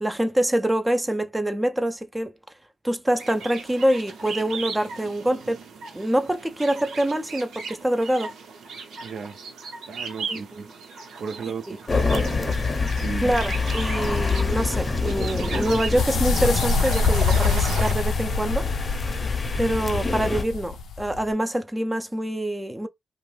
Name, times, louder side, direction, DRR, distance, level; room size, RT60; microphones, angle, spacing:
voice 1, 0.0-2.3 2.8-5.6 5.9-8.3 10.3-10.6 11.7-11.8 13.2-18.7 19.6-22.9, right 1 dB, 15° right, 0.4 m, -25 dB
sound 1, 3.1-17.9, right 4 dB, 85° right, 0.9 m, -36 dB
voice 2, 9.0-9.4 9.9-10.7 11.2-12.6 13.0-13.3, right 5 dB, 70° right, 0.5 m, -35 dB
sound 2, 11.9-20.4, left 3 dB, 35° left, 0.6 m, -26 dB
sound 3, 16.0-21.3, left 5 dB, 80° left, 0.4 m, -25 dB
2.5 x 2.2 x 3.2 m
cardioid pair, 70°, 0 cm